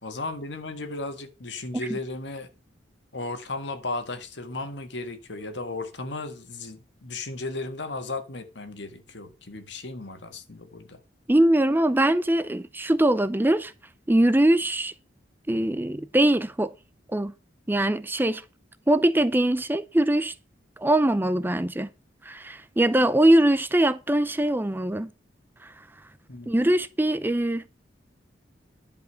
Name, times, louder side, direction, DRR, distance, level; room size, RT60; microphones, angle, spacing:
voice 1, 0.0-2.5 3.1-11.0 26.3-26.7, left 2 dB, 70° left, 1.7 m, -35 dB
voice 2, 11.3-13.7 14.1-14.9 15.5-16.7 17.1-17.3 17.7-18.4 18.9-20.3 20.8-21.9 22.2-25.1 25.6-25.8 26.5-27.6, right 1 dB, 10° right, 0.5 m, -22 dB
10.5 x 5.2 x 6.3 m
head